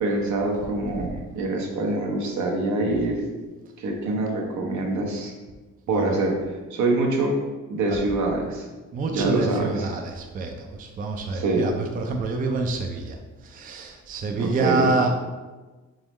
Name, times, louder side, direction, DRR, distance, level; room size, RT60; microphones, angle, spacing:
voice 1, 0.0-3.2 3.8-5.3 5.9-6.3 6.7-7.4 7.7-8.6 9.1-9.9 11.3-11.7 14.4-14.9, right 2 dB, 70° right, 0 dB, 0.9 m, -25 dB
voice 2, 8.9-13.2 13.4-15.1, right 3 dB, 30° right, 3 dB, 0.4 m, -27 dB
3.7 x 3.1 x 3.1 m, 1.2 s
cardioid pair, 90°, 30 cm